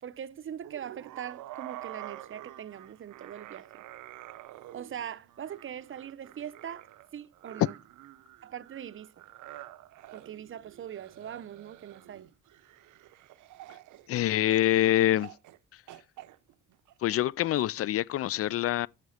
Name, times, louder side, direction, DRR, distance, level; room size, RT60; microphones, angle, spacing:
voice 1, 0.0-3.8 4.7-7.8 8.4-9.2 10.1-12.3, right 9 dB, 45° right, 0.6 m, -42 dB
Zombie groan, 0.6-14.7 15.2-15.6 15.9-17.6, right 15 dB, 80° right, 0.7 m, -48 dB
voice 2, 14.1-15.3 17.0-18.9, left 13 dB, 50° left, 0.4 m, -25 dB
8.0 x 6.4 x 5.6 m
cardioid pair, 90°, 30 cm